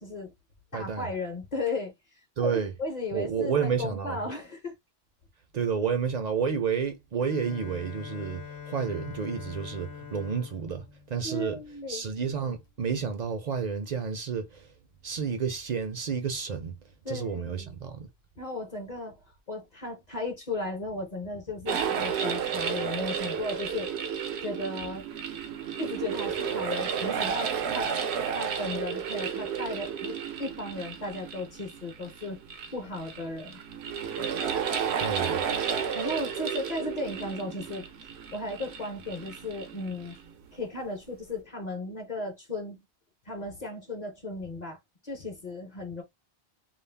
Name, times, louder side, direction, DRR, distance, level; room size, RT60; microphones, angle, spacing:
voice 1, 0.0-0.3 0.7-1.9 2.4-4.7 11.2-12.0 17.0-17.7 18.4-19.2 19.5-23.9 24.4-25.1 25.8-27.9 28.3-32.4 32.7-33.6 35.3-35.4 35.8-37.9 38.3-40.2 40.5-42.8 43.3-44.8 45.0-46.0, left 2 dB, 45° left, 0.7 m, -35 dB
voice 2, 0.7-1.1 2.4-2.7 3.1-4.2 5.5-11.6 11.9-14.7 15.0-16.8 17.1-18.1 35.0-35.5, right 6 dB, 55° right, 0.5 m, -30 dB
Bowed string instrument, 7.2-12.0, left 7 dB, 80° left, 0.9 m, -44 dB
sound 1, 21.7-40.3, right 7 dB, 85° right, 0.9 m, -32 dB
2.4 x 2.0 x 3.2 m
omnidirectional pair, 1.1 m